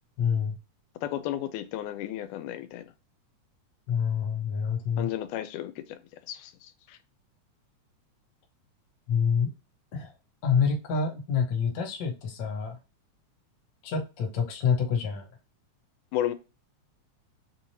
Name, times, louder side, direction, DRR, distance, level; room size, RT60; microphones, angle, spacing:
voice 1, 0.2-0.6 3.9-5.1 9.1-9.5 9.9-10.1 10.4-12.8 13.8-15.3, left 6 dB, 70° left, 1.0 m, -27 dB
voice 2, 1.0-2.8 5.0-6.0 6.3-7.0 16.1-16.3, left 12 dB, 85° left, 2.0 m, -33 dB
6.1 x 3.0 x 2.7 m
omnidirectional pair, 3.5 m